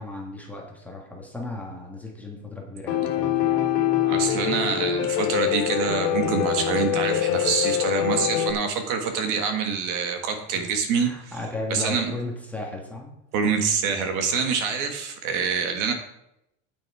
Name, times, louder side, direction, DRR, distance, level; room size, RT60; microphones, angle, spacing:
voice 1, 0.0-3.7 10.6-10.7 10.9-13.1, left 2 dB, 5° left, -2 dB, 1.5 m, -35 dB
Piano, 2.9-8.5, left 10 dB, 70° left, 1.6 m, -24 dB
voice 2, 3.8-11.3 11.7-12.1 13.3-15.9, right 5 dB, 45° right, 6 dB, 1.7 m, -26 dB
9.0 x 8.9 x 4.8 m, 0.83 s
cardioid pair, 170°, 41 cm